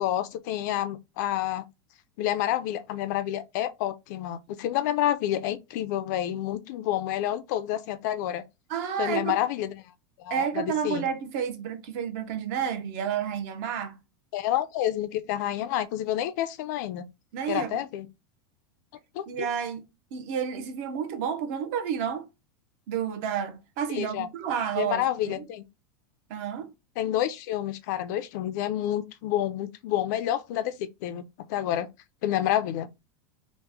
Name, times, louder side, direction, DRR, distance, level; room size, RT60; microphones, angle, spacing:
voice 1, 0.0-1.6 2.2-8.4 9.0-9.8 10.2-11.1 14.3-17.1 17.5-18.1 19.1-19.5 23.9-24.3 24.8-25.6 27.0-31.2 31.5-31.9 32.2-32.9, left 12 dB, 50° left, 0.4 m, -29 dB
voice 2, 8.7-9.4 10.3-14.0 17.3-17.8 19.3-22.3 22.9-25.4 26.3-26.7, right 8 dB, 45° right, 0.6 m, -30 dB
3.0 x 2.1 x 3.3 m
supercardioid pair, 165°, 12 cm